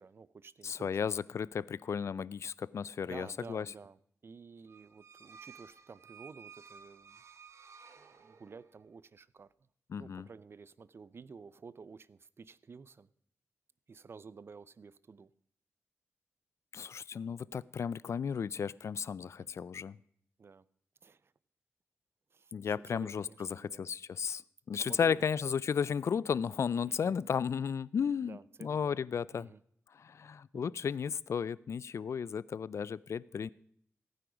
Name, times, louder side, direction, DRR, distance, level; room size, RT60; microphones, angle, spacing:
voice 1, 0.0-1.0 3.0-7.2 8.0-9.5 10.0-13.1 13.9-15.3 19.2-19.5 20.4-20.6 21.0-21.3 22.3-23.9 24.8-25.3 26.8-27.1 28.2-29.0 29.3-29.6 30.5-30.7, right 5 dB, 55° right, 19 dB, 0.6 m, -52 dB
voice 2, 0.6-3.7 9.9-10.3 16.7-20.0 22.5-24.4 24.7-29.5 29.9-33.5, left 7 dB, 70° left, 21 dB, 0.4 m, -34 dB
sound 1, 4.7-8.8, right 6 dB, 70° right, 1.1 m, -55 dB
15.5 x 9.4 x 5.0 m, 0.66 s
wide cardioid pair, 80°, 5 cm